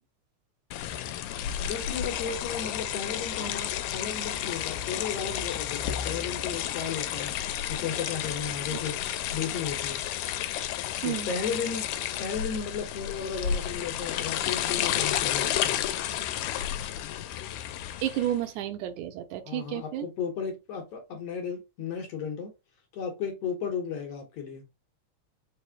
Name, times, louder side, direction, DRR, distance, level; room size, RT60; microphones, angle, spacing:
sound 1, 0.7-18.4, left 11 dB, 90° left, 2.0 m, -31 dB
voice 1, 1.6-7.4 7.7-9.0 9.3-10.0 11.0-11.9 12.2-15.9 19.5-22.5 22.9-24.6, left 6 dB, 65° left, 1.9 m, -34 dB
voice 2, 18.0-20.1, right 12 dB, 85° right, 2.1 m, -31 dB
4.9 x 2.0 x 4.6 m
omnidirectional pair, 3.4 m